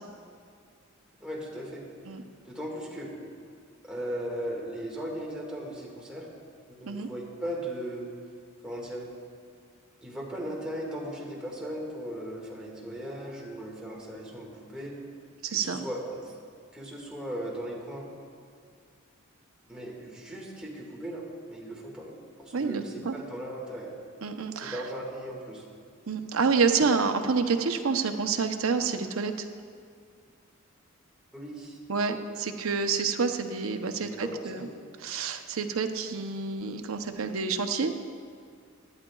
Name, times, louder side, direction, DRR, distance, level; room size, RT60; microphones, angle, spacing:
voice 1, 1.2-1.9 2.4-3.1 3.8-6.3 6.7-8.1 8.6-9.0 10.0-15.0 15.5-16.3 16.7-18.1 19.7-22.1 22.4-23.9 24.5-25.6 31.3-31.8 33.9-34.7, equal, 5° right, -3 dB, 1.8 m, -37 dB
voice 2, 15.4-15.8 22.5-23.1 24.2-24.8 26.1-29.5 31.9-34.7 35.0-37.9, right 5 dB, 70° right, 7 dB, 0.7 m, -28 dB
17.5 x 11.5 x 2.3 m, 2.2 s
head